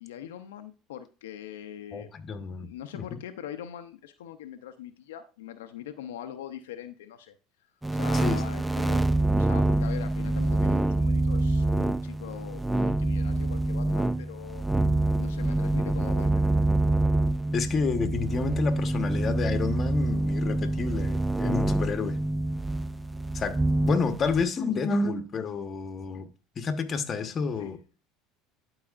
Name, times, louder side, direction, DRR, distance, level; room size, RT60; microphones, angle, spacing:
voice 1, 0.0-2.1 2.6-7.3 7.9-9.0 9.4-14.6 15.2-16.5 27.6-27.8, left 10 dB, 90° left, 0.6 m, -42 dB
voice 2, 1.9-3.2 8.1-8.4 14.8-15.0 17.5-22.2 23.3-23.6 23.8-26.3 26.6-27.8, left 5 dB, 35° left, 1.1 m, -30 dB
sound 1, 7.8-24.4, right 2 dB, 10° right, 0.4 m, -26 dB
11.5 x 4.8 x 2.5 m
supercardioid pair, 95°, 0 cm